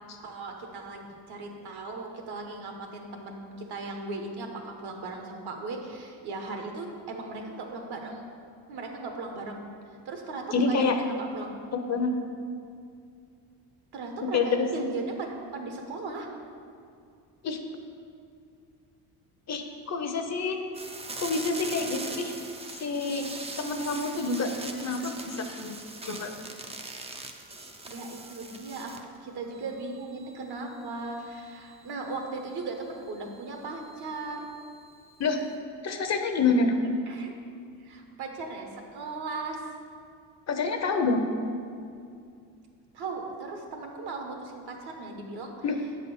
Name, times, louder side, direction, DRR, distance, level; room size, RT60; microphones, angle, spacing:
voice 1, 0.2-8.2 8.7-9.6 10.0-11.6 13.9-15.2 15.5-16.3 27.9-28.9 29.2-34.5 37.1-37.3 37.8-39.6 42.9-45.5, right 3 dB, 60° right, 3 dB, 1.2 m, -37 dB
voice 2, 10.5-11.0 11.7-12.1 14.3-14.7 17.4-17.6 19.5-20.6 21.2-22.3 22.8-23.2 23.6-24.5 24.8-25.8 26.0-26.3 35.2-35.4 35.8-36.8 40.5-41.2 45.6-45.7, left 4 dB, 40° left, 5 dB, 0.7 m, -27 dB
sound 1, 20.7-29.2 29.5-35.5, right 3 dB, 15° right, 0.4 m, -43 dB
8.1 x 4.1 x 7.0 m, 2.4 s
cardioid pair, 145°, 43 cm